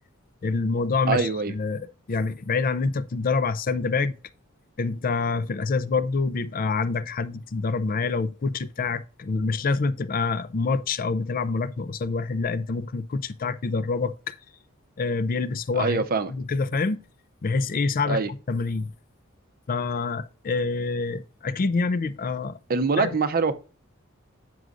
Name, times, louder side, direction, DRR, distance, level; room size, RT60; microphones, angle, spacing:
voice 1, 0.4-4.2 4.8-14.3 15.0-17.0 17.4-18.2 18.5-18.9 19.7-22.6 23.0-23.1, left 4 dB, 40° left, 0.4 m, -26 dB
voice 2, 1.1-1.5 15.7-16.3 18.1-18.3 22.7-23.5, right 4 dB, 45° right, 0.6 m, -24 dB
9.3 x 6.2 x 2.5 m
head